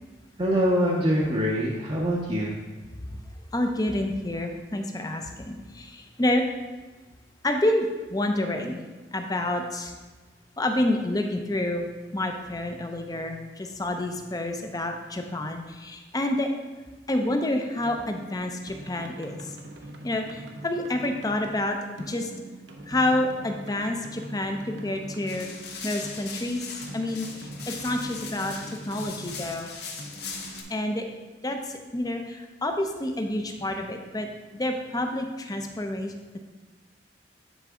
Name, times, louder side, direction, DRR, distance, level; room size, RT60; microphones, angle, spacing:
voice 1, 0.4-2.6, equal, 30° right, -4 dB, 0.7 m, -24 dB
voice 2, 3.5-6.4 7.4-8.8 9.1-9.9 10.6-11.9 12.1-16.5 17.1-19.6 20.0-22.3 22.9-25.5 25.8-26.7 26.9-28.6 28.9-29.7 30.7-31.1 31.4-34.3 34.5-36.1, left 1 dB, 20° left, 4 dB, 0.6 m, -28 dB
sound 1, 17.8-31.4, right 1 dB, 70° right, 0.8 m, -43 dB
sound 2, 25.3-30.6, left 5 dB, 60° left, 1.0 m, -40 dB
10.0 x 4.0 x 3.7 m, 1.3 s
head